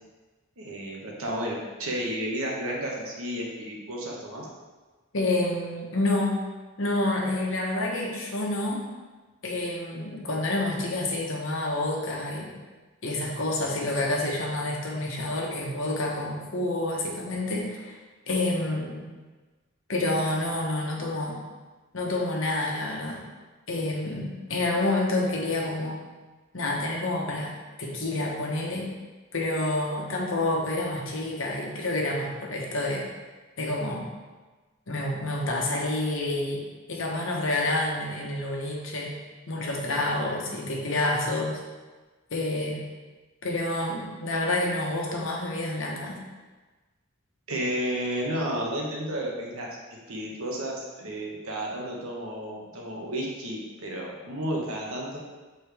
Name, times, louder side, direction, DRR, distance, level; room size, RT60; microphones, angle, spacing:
voice 1, 0.6-4.5 47.5-49.7 50.1-55.2, right 1 dB, 85° right, -2 dB, 1.2 m, -32 dB
voice 2, 5.1-6.4 6.8-8.9 9.4-12.5 13.0-18.0 18.3-19.0 19.9-21.4 21.9-23.2 23.7-26.0 26.5-27.5 27.8-28.9 29.3-33.0 33.6-34.0 34.9-36.6 36.9-39.2 39.5-41.6 42.3-42.8 43.4-46.2, left 2 dB, 65° left, -2 dB, 1.1 m, -28 dB
6.6 x 4.2 x 3.4 m, 1.3 s
head